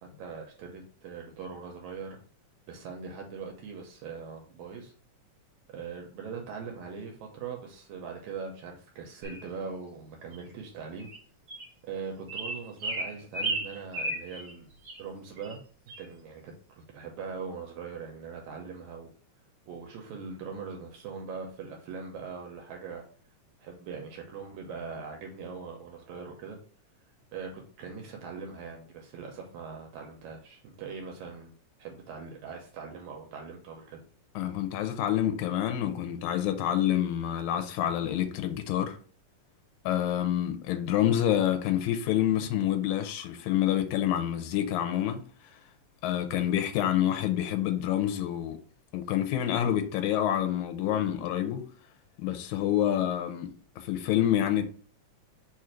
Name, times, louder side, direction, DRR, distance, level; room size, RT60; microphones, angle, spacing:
voice 1, 0.2-2.2 2.7-4.9 5.7-11.1 11.8-14.7 15.0-15.6 16.0-19.1 19.7-23.0 23.6-26.6 27.3-31.5 31.8-34.0, right 5 dB, 80° right, 2.0 m, -41 dB
sound 1, 9.2-9.4 10.3-10.4 11.0-11.2 11.5-11.7 12.3-14.5 14.8-15.0 15.4-15.6 15.9-16.0, right 2 dB, 50° right, 1.1 m, -34 dB
voice 2, 34.4-39.0 39.8-45.2 46.0-48.6 48.9-51.7 52.2-54.6, left 11 dB, 85° left, 2.0 m, -27 dB
4.6 x 2.5 x 4.3 m
omnidirectional pair, 3.4 m